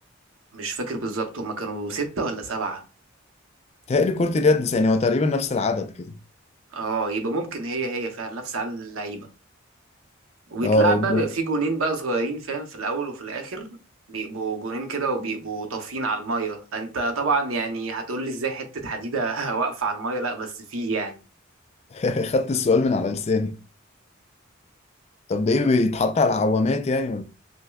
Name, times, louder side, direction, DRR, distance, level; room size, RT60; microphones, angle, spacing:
voice 1, 0.5-2.8 6.7-9.3 10.5-13.7 14.1-21.2, right 3 dB, 85° right, 0.8 m, -28 dB
voice 2, 3.9-6.2 10.6-11.2 21.9-23.6 25.3-27.2, left 3 dB, 30° left, 0.3 m, -21 dB
6.0 x 2.1 x 2.3 m
head